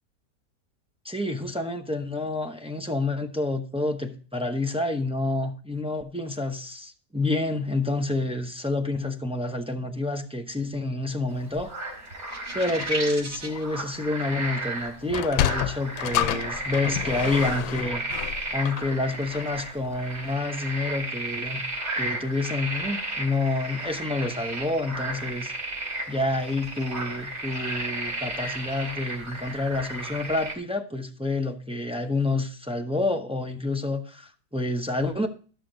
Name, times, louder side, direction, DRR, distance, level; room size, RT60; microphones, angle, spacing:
voice 1, 1.0-11.7 12.5-18.0 18.5-21.6 22.0-25.5 26.1-35.3, left 2 dB, 5° right, 3 dB, 0.5 m, -28 dB
sound 1, 11.3-30.5, right 2 dB, 40° right, 3.9 m, -34 dB
sound 2, 12.3-13.6, right 1 dB, 70° right, 2.4 m, -34 dB
Sliding door, 15.0-19.6, left 11 dB, 90° left, 1.2 m, -29 dB
13.0 x 6.7 x 3.9 m, 0.39 s
omnidirectional pair, 1.8 m